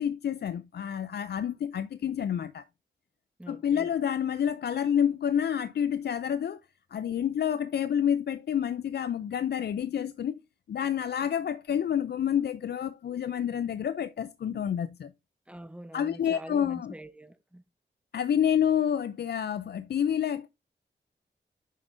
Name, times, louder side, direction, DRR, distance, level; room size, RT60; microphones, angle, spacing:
voice 1, 0.0-2.6 3.5-6.6 6.9-10.3 10.7-15.1 15.9-16.9 18.1-20.5, left 9 dB, 65° left, 0.4 m, -28 dB
voice 2, 3.4-3.9 15.5-17.6, right 1 dB, 5° right, 0.8 m, -45 dB
7.3 x 5.2 x 2.6 m
cardioid pair, 60°, 18 cm